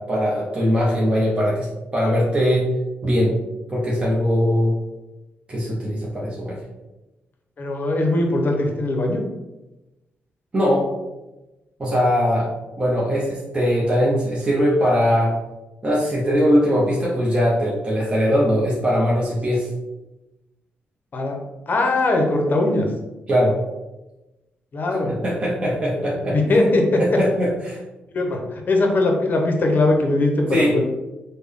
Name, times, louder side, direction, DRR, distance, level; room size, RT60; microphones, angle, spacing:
voice 1, 0.0-1.7 1.9-2.7 3.0-3.4 3.7-4.7 5.5-6.6 10.5-10.9 11.8-15.3 15.8-19.7 23.3-23.5 25.1-26.4 27.0-27.8 30.5-30.8, equal, 25° right, -5 dB, 0.8 m, -20 dB
voice 2, 7.6-9.2 21.1-21.4 21.7-22.9 24.7-25.1 26.3-27.0 28.1-30.8, left 2 dB, 45° left, 2 dB, 0.7 m, -20 dB
3.5 x 2.2 x 3.5 m, 1.0 s
cardioid pair, 90°, 4 cm